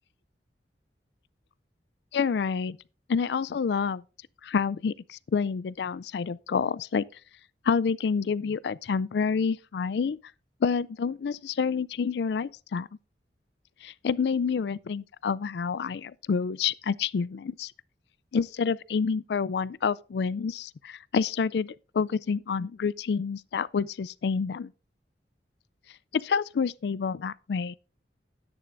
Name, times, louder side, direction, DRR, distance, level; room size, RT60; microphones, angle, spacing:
voice 1, 2.1-2.8 3.1-4.0 4.4-7.0 7.7-10.2 10.6-12.9 13.8-17.7 18.3-24.7 26.1-27.8, left 5 dB, 65° left, 0.4 m, -28 dB
12.0 x 9.9 x 2.6 m
head